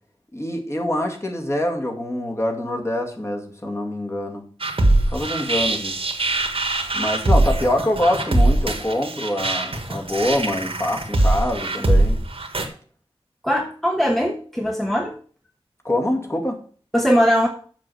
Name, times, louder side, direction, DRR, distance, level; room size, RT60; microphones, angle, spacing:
voice 1, 0.3-4.4 5.1-6.0 6.9-12.2 15.8-16.6, left 1 dB, 25° left, 2.2 m, -25 dB
sound 1, 4.6-12.6, right 2 dB, 60° right, 1.6 m, -21 dB
voice 2, 13.4-15.2 16.9-17.5, equal, ahead, 1.1 m, -20 dB
7.4 x 6.2 x 6.9 m
wide cardioid pair, 75°, 11 cm